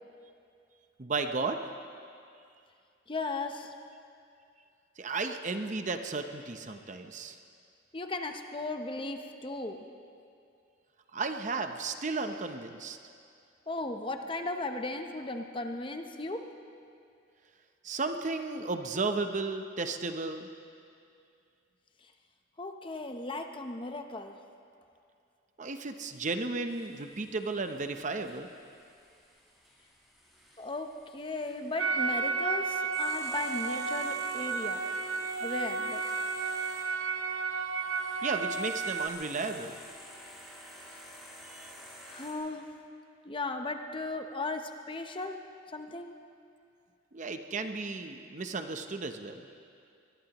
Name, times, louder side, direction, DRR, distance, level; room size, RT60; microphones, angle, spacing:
voice 1, 1.0-1.6 5.0-7.4 11.1-13.0 17.8-20.5 25.6-28.5 38.2-39.8 41.4-41.7 47.1-49.5, right 3 dB, 35° right, 7 dB, 0.7 m, -34 dB
voice 2, 3.1-3.7 7.9-9.9 13.7-16.5 22.6-24.4 30.6-34.9 35.4-36.0 42.1-42.7 43.2-45.4 45.7-46.1, left 2 dB, 25° left, 6 dB, 0.7 m, -36 dB
sound 1, 26.7-42.3, equal, ahead, 3.4 m, -52 dB
sound 2, 31.8-39.1, right 4 dB, 70° right, 0.7 m, -32 dB
23.5 x 20.5 x 3.0 m, 2.5 s
head